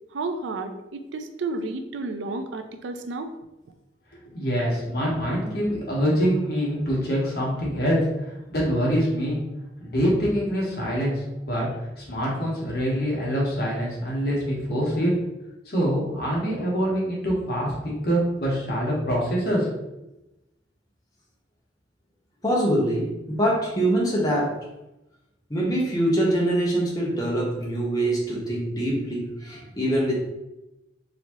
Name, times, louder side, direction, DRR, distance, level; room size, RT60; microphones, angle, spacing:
voice 1, 0.1-3.3, right 3 dB, 85° right, 7 dB, 0.4 m, -31 dB
voice 2, 4.3-8.0 8.5-9.4 9.8-11.7 12.0-15.1 15.7-19.7, equal, 55° left, -4 dB, 1.2 m, -25 dB
voice 3, 22.4-24.6 25.5-30.2, right 1 dB, 20° left, -4 dB, 0.8 m, -24 dB
4.1 x 2.7 x 2.9 m, 0.96 s
head